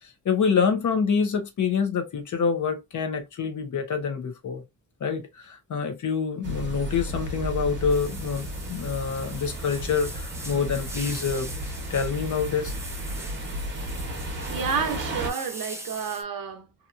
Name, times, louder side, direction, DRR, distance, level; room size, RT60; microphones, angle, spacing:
voice 1, 0.2-4.6 5.0-12.7, left 6 dB, 55° left, 0.7 m, -26 dB
sound 1, 6.4-15.3, equal, 30° right, 0.9 m, -33 dB
sound 2, 7.9-16.2, right 2 dB, 10° right, 0.3 m, -41 dB
voice 2, 14.5-16.7, right 6 dB, 70° right, 0.8 m, -30 dB
2.8 x 2.4 x 2.3 m
wide cardioid pair, 165°, 35 cm